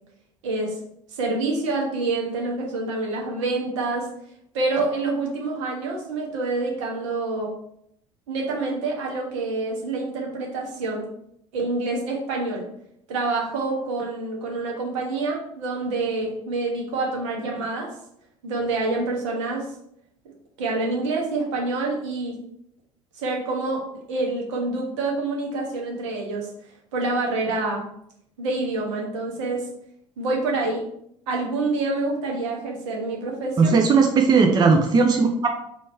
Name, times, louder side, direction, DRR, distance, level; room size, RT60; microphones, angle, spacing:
voice 1, 0.4-0.8 1.1-4.1 4.5-7.5 8.3-11.1 11.5-12.7 13.1-17.9 18.4-19.6 20.6-22.3 23.1-26.5 26.9-27.8 28.4-29.6 30.2-30.8 31.3-33.8, right 3 dB, 65° right, 0 dB, 1.2 m, -27 dB
voice 2, 33.6-35.5, right 4 dB, 25° right, 3 dB, 0.5 m, -17 dB
4.4 x 2.7 x 4.3 m, 0.74 s
figure-of-eight pair, 65°, 17 cm